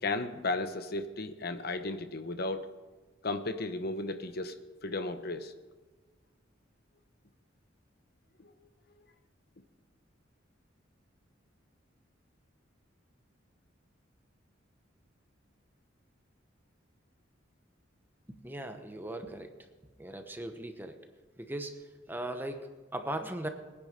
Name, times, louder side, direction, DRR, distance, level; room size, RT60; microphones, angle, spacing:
voice 1, 0.0-2.7 3.2-4.6 4.8-5.5 8.4-8.5, left 2 dB, 55° left, 9 dB, 0.9 m, -34 dB
voice 2, 18.3-19.5 20.0-21.0 21.4-23.5, right 1 dB, 10° right, 6 dB, 1.0 m, -39 dB
21.5 x 9.9 x 5.2 m, 1.3 s
head